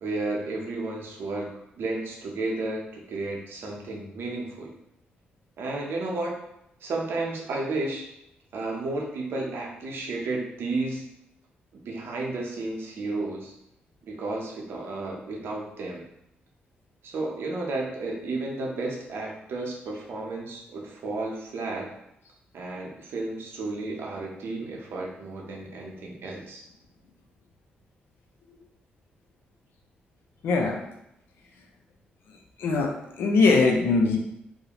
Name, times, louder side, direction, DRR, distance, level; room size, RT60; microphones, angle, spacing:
voice 1, 0.0-4.7 5.6-6.4 6.8-8.1 8.5-11.1 11.7-13.5 14.0-16.1 17.0-21.9 22.5-26.6, right 2 dB, 70° right, -1 dB, 0.6 m, -32 dB
voice 2, 30.4-30.8 32.6-32.9 33.2-34.2, left 3 dB, 80° left, 1 dB, 0.5 m, -21 dB
2.4 x 2.1 x 2.8 m, 0.82 s
supercardioid pair, 60°, 4 cm